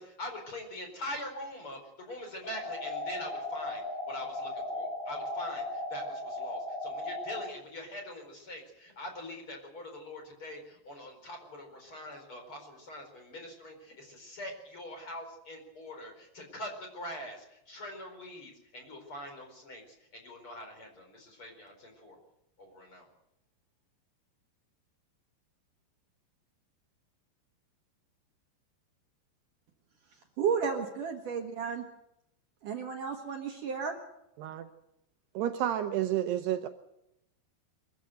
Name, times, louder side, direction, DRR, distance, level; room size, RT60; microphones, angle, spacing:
voice 1, 0.0-22.2 22.6-23.1, left 1 dB, 30° left, 4 dB, 5.1 m, -43 dB
sound 1, 2.4-7.5, left 2 dB, 70° left, 10.0 m, -37 dB
voice 2, 30.4-31.8 32.6-34.0, right 6 dB, 55° right, 3 dB, 2.9 m, -32 dB
voice 3, 35.3-36.7, right 11 dB, 75° right, 8 dB, 2.8 m, -30 dB
23.5 x 15.0 x 8.0 m, 0.82 s
omnidirectional pair, 5.1 m